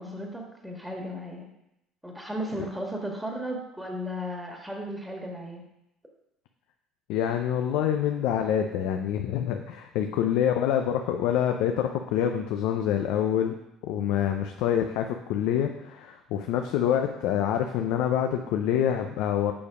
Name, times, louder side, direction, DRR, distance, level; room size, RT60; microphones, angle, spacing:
voice 1, 0.0-1.4 2.0-5.6, equal, 5° right, 0 dB, 1.5 m, -35 dB
voice 2, 7.1-13.6 13.8-19.5, left 9 dB, 80° left, 5 dB, 0.5 m, -26 dB
6.9 x 5.3 x 4.9 m, 0.85 s
supercardioid pair, 95°, 0 cm